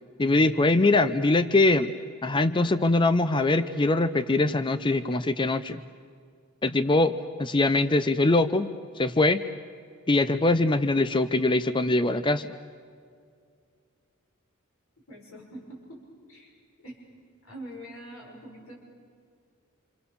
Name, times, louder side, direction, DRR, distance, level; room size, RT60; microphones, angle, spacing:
voice 1, 0.2-1.9 2.2-5.8 6.6-8.7 9.0-9.4 10.1-12.5, left 2 dB, 20° left, 12 dB, 0.6 m, -22 dB
voice 2, 15.1-16.0 16.3-17.0 17.4-18.7, right 1 dB, 80° left, -2 dB, 6.2 m, -44 dB
28.5 x 27.0 x 7.0 m, 2.2 s
head